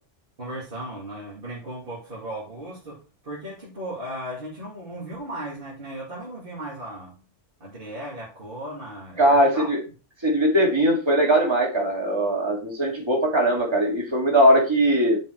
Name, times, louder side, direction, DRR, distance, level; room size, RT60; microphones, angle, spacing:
voice 1, 0.4-7.2 7.6-9.8, right 1 dB, 45° right, 2.6 m, -36 dB
voice 2, 9.2-9.8 10.2-15.2, right 1 dB, 20° right, 2.3 m, -20 dB
11.0 x 4.1 x 4.6 m
omnidirectional pair, 1.3 m